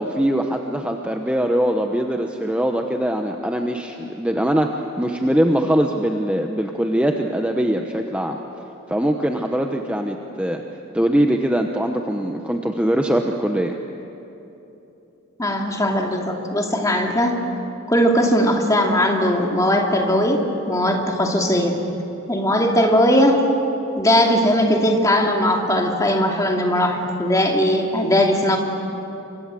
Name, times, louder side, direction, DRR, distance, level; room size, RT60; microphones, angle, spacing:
voice 1, 0.0-8.4 8.9-10.6 10.9-13.8, right 1 dB, 5° right, 3 dB, 1.0 m, -22 dB
voice 2, 15.4-17.4 17.9-21.8 22.3-23.4 24.0-28.6, equal, 15° left, 1 dB, 2.6 m, -19 dB
28.5 x 25.0 x 7.7 m, 3.0 s
head